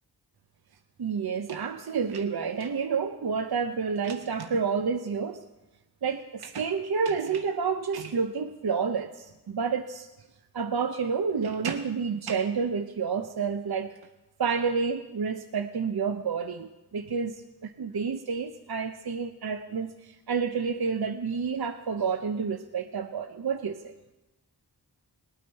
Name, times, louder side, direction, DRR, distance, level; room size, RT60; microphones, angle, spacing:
voice 1, 1.0-5.4 6.0-10.1 10.5-13.9 14.4-17.3 17.6-23.9, right 5 dB, 65° right, 7 dB, 0.7 m, -29 dB
19.5 x 9.0 x 4.5 m, 1.0 s
wide cardioid pair, 40°, 41 cm